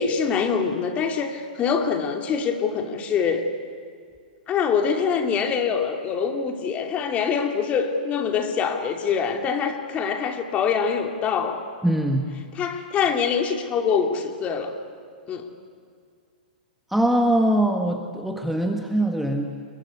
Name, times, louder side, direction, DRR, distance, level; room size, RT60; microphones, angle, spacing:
voice 1, 0.0-3.5 4.5-11.7 12.5-14.7 15.3-15.5, left 6 dB, 25° left, 5 dB, 2.6 m, -24 dB
voice 2, 11.8-12.3 16.9-19.5, right 1 dB, ahead, 3 dB, 1.5 m, -22 dB
28.5 x 22.0 x 8.4 m, 2.2 s
hypercardioid pair, 135°, 5 cm